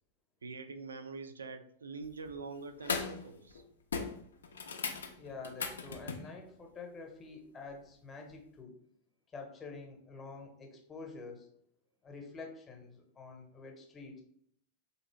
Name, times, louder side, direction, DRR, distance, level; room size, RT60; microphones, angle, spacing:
voice 1, 0.4-3.6, right 4 dB, 70° right, 8 dB, 0.3 m, -45 dB
sound 1, 2.0-2.3 2.8-3.2 3.5-3.6 3.9-6.3 8.3-8.4, left 5 dB, 70° left, 0.4 m, -38 dB
voice 2, 5.1-8.8 9.3-11.5 12.0-14.2, left 4 dB, 20° left, 3 dB, 0.8 m, -47 dB
3.8 x 2.7 x 3.1 m, 0.67 s
figure-of-eight pair, 90°, 0 cm